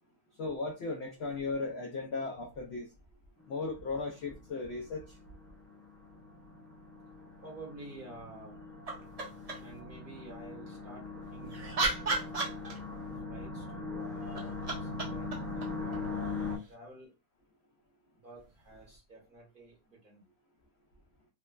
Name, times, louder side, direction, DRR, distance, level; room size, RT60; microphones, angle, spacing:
voice 1, 0.4-2.9 3.5-5.2, left 3 dB, 75° left, 1 dB, 0.6 m, -36 dB
sound 1, 3.4-16.6, left 3 dB, 20° left, 0.4 m, -41 dB
voice 2, 7.4-8.6 9.6-12.4 13.2-17.1 18.1-20.2, right 2 dB, 40° right, -3 dB, 1.0 m, -51 dB
sound 2, 8.9-9.8 11.2-13.1 14.2-16.7 18.8-18.9, right 3 dB, 60° right, 0.4 m, -36 dB
3.1 x 2.1 x 2.2 m, 0.26 s
omnidirectional pair, 1.6 m